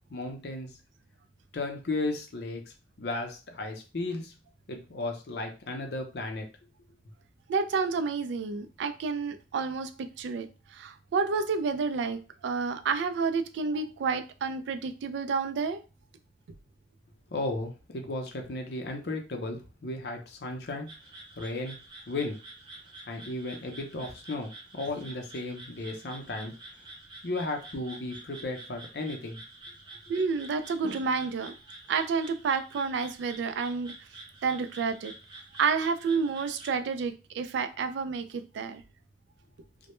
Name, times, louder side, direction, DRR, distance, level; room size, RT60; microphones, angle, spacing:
voice 1, 0.1-0.8 1.5-4.3 4.7-6.5 17.3-20.9 21.4-21.8 22.1-22.4 23.1-26.5 27.2-29.4, left 2 dB, 65° left, 4 dB, 0.5 m, -35 dB
voice 2, 7.5-9.9 10.2-15.8 30.1-31.5 31.9-33.9 34.4-35.1 35.6-38.8, right 5 dB, 80° right, 9 dB, 0.3 m, -30 dB
sound 1, 20.9-36.7, right 2 dB, 25° right, 0.7 m, -48 dB
2.1 x 2.1 x 2.9 m, 0.32 s
head